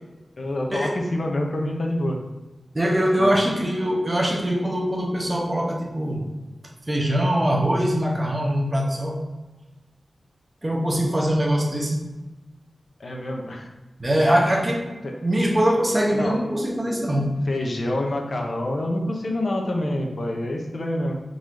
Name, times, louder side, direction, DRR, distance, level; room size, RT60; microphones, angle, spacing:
voice 1, 0.4-2.2 3.2-3.3 13.0-13.7 14.2-14.6 15.0-15.1 16.1-16.4 17.5-21.1, left 1 dB, 60° left, 1 dB, 0.8 m, -27 dB
voice 2, 2.7-6.3 6.9-9.3 10.6-12.1 14.0-14.9 15.2-17.4, equal, 30° right, -1 dB, 1.1 m, -22 dB
3.9 x 2.7 x 4.8 m, 1.1 s
cardioid pair, 60°, 0 cm